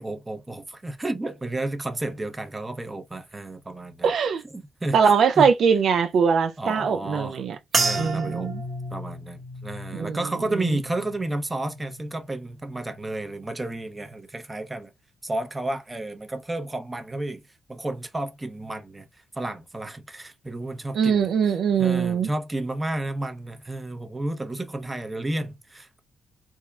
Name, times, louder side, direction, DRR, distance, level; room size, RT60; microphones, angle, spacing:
voice 1, 0.0-4.1 4.5-5.5 6.6-7.4 7.7-8.5 8.9-14.9 15.2-17.4 17.7-19.1 19.3-26.0, right 2 dB, 15° right, 0.6 m, -32 dB
voice 2, 4.0-4.4 4.9-7.6 8.0-8.6 9.9-10.2 10.7-10.8 20.9-22.3, right 6 dB, 65° right, 0.5 m, -21 dB
sound 1, 7.7-12.3 12.6-13.2 13.8-14.1, right 3 dB, 45° right, 1.2 m, -32 dB
3.6 x 2.1 x 4.2 m
cardioid pair, 120°, 0 cm